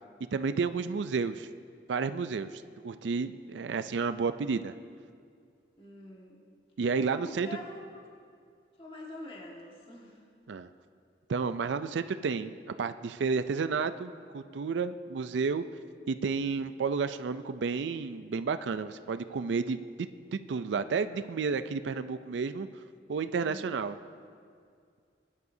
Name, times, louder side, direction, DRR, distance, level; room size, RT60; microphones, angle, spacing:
voice 1, 0.3-1.5 1.9-4.7 6.8-7.5 10.5-10.7 11.3-15.6 16.1-22.7 23.1-24.0, right 5 dB, 85° right, 11 dB, 0.4 m, -31 dB
voice 2, 5.8-6.4 7.2-7.8 8.8-10.2 23.3-23.7, left 1 dB, 30° left, -3 dB, 1.7 m, -45 dB
20.5 x 11.0 x 2.7 m, 2.3 s
head